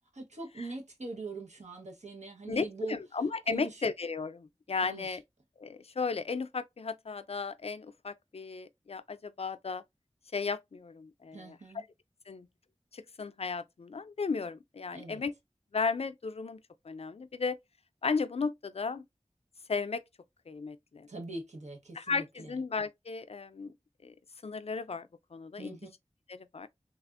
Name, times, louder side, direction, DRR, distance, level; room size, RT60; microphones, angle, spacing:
voice 1, 0.1-3.0 3.5-3.8 4.8-5.2 11.3-11.8 14.9-15.2 21.1-22.5 25.6-25.9, right 3 dB, 90° right, 1.0 m, -42 dB
voice 2, 2.5-5.2 5.6-9.8 10.3-11.8 12.3-12.5 12.9-15.3 15.7-17.6 18.0-19.0 19.7-20.0 20.5-21.1 21.9-23.7 24.0-24.1 24.4-25.8 26.3-26.7, left 4 dB, 60° left, 0.4 m, -35 dB
3.4 x 2.4 x 2.4 m
wide cardioid pair, 50°, 12 cm